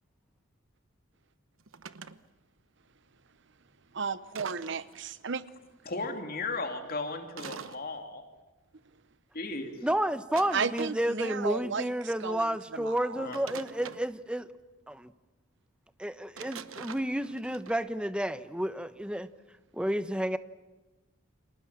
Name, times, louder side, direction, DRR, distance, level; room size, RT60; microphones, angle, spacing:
sound 1, 1.6-2.2 4.3-5.0 7.4-7.8 10.3-11.1 13.3-14.1 16.4-17.7, right 6 dB, 85° right, 1.1 m, -43 dB
voice 1, 3.9-5.4 10.5-11.9 12.2-13.3, right 5 dB, 60° right, 0.9 m, -34 dB
voice 2, 5.8-8.2 9.3-9.9 13.2-13.4, left 3 dB, 45° left, 2.9 m, -36 dB
voice 3, 9.8-14.5 14.9-15.1 16.0-19.3 19.7-20.4, right 1 dB, 5° right, 1.0 m, -31 dB
30.0 x 26.0 x 7.6 m
head